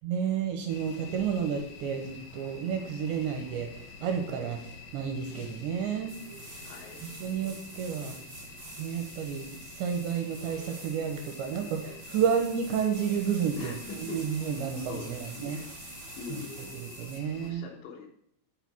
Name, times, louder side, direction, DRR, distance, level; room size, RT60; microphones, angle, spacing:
voice 1, 0.0-4.6 4.9-6.2 7.0-8.1 8.8-9.5 9.8-15.6 16.3-16.4 16.7-17.6, right 7 dB, 80° right, 4 dB, 2.8 m, -31 dB
sound 1, 0.7-17.5, left 4 dB, 85° left, 4.2 m, -48 dB
sound 2, 6.1-17.2, right 3 dB, 55° right, 1.2 m, -47 dB
voice 2, 6.6-7.0 13.5-14.2 14.8-15.7 16.2-16.8 17.4-18.1, left 5 dB, 70° left, 1 dB, 3.0 m, -43 dB
10.5 x 4.4 x 6.0 m, 0.71 s
omnidirectional pair, 5.8 m